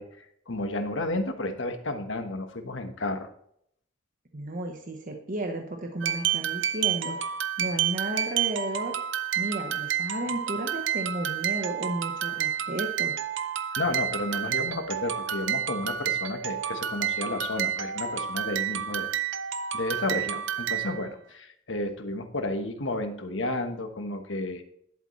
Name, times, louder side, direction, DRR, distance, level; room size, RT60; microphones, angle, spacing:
voice 1, 0.0-3.3 13.8-19.1 19.7-24.6, left 2 dB, 90° left, 6 dB, 1.3 m, -32 dB
voice 2, 4.3-7.2 7.6-8.9 9.3-13.1, right 1 dB, 45° right, 3 dB, 1.1 m, -33 dB
sound 1, 6.0-21.1, right 9 dB, 75° right, 0.6 m, -30 dB
11.0 x 8.2 x 3.2 m, 0.68 s
head